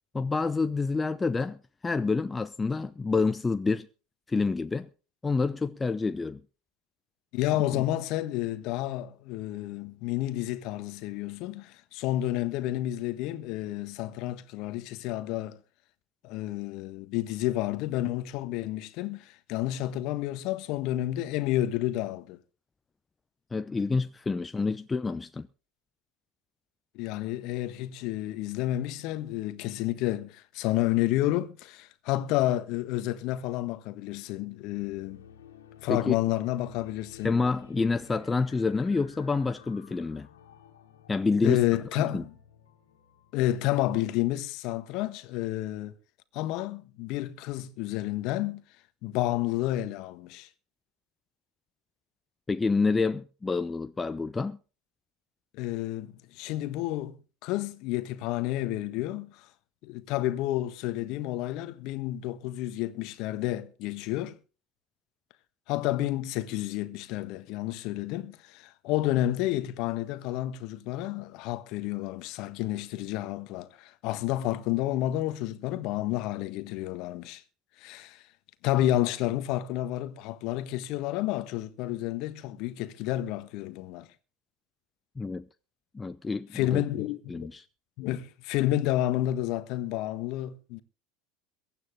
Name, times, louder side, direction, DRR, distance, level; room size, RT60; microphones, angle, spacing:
voice 1, 0.1-3.9 4.3-4.9 5.2-6.4 7.7-7.8 23.5-25.5 35.9-36.1 37.2-40.3 41.1-41.6 42.0-42.2 52.5-54.6 85.2-85.5 85.9-86.8 87.3-87.6, left 4 dB, 15° left, 0.7 m, -28 dB
voice 2, 7.3-15.6 16.2-22.4 26.9-35.2 35.8-37.4 41.4-42.3 43.3-45.9 46.3-48.6 49.0-50.5 55.5-57.2 57.4-59.5 59.8-64.4 65.7-77.4 77.8-78.2 78.6-84.1 86.5-87.5 88.0-90.8, left 14 dB, 50° left, 1.4 m, -30 dB
sound 1, 34.3-44.5, left 8 dB, 70° left, 2.4 m, -54 dB
22.5 x 9.3 x 3.7 m
figure-of-eight pair, 75°, 0 cm